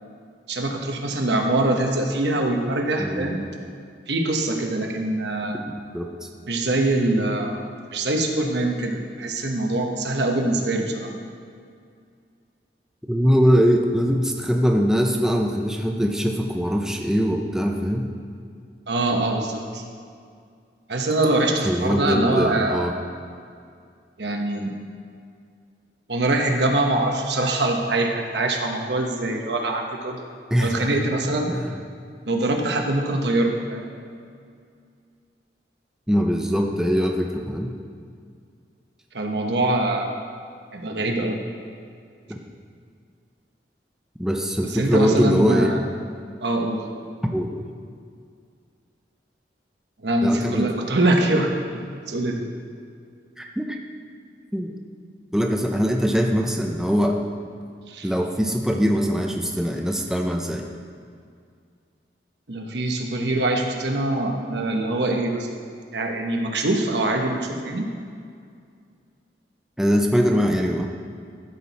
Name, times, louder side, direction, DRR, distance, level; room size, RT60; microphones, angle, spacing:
voice 1, 0.5-3.4 4.1-5.6 6.5-7.6 7.9-11.1 18.9-19.8 20.9-22.8 24.2-24.8 26.1-30.3 30.6-31.5 32.3-33.9 39.1-40.2 40.7-41.4 44.6-45.8 46.4-46.8 50.0-52.4 57.9-58.1 62.5-65.5 65.9-67.9, right 2 dB, 75° right, 2 dB, 1.1 m, -23 dB
voice 2, 5.9-6.3 13.1-18.1 21.6-22.9 30.5-30.9 31.5-31.7 36.1-37.8 42.3-42.4 44.2-45.8 47.3-47.6 50.2-50.7 53.4-53.8 54.5-54.7 55.3-57.2 57.6-57.7 58.0-60.6 69.8-70.8, equal, 5° right, 1 dB, 0.5 m, -22 dB
13.5 x 6.0 x 4.1 m, 2.2 s
head